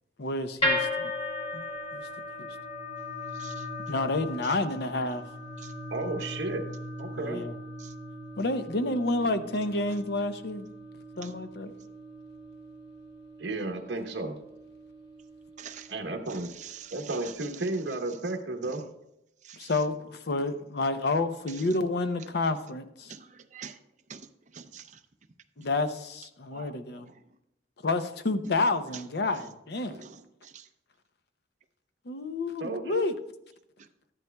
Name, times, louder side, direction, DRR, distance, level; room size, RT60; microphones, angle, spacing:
voice 1, 0.2-1.1 1.5-1.6 1.9-2.1 2.4-2.5 3.9-5.2 7.2-7.5 8.4-10.7 11.2-11.7 19.6-19.9 20.3-23.1 25.6-27.1 27.8-30.0 32.1-33.1, left 2 dB, 65° left, 10 dB, 0.7 m, -29 dB
sound 1, 0.6-16.8, left 1 dB, 35° left, 2.3 m, -37 dB
voice 2, 3.3-3.7 4.4-4.5 5.6-5.7 6.2-6.3 11.2-11.3 15.6-15.9 16.3-17.7 18.6-18.8 19.4-19.7 23.1-23.8 24.1-24.3 24.5-25.0 25.6-25.7 26.5-27.1 29.8-30.7, right 7 dB, 40° right, 7 dB, 0.6 m, -46 dB
voice 3, 5.9-6.7 7.0-7.4 13.4-14.3 15.9-16.5 16.9-18.9 32.6-33.0, right 2 dB, 65° right, 3 dB, 1.1 m, -33 dB
13.0 x 11.0 x 2.3 m, 0.84 s
head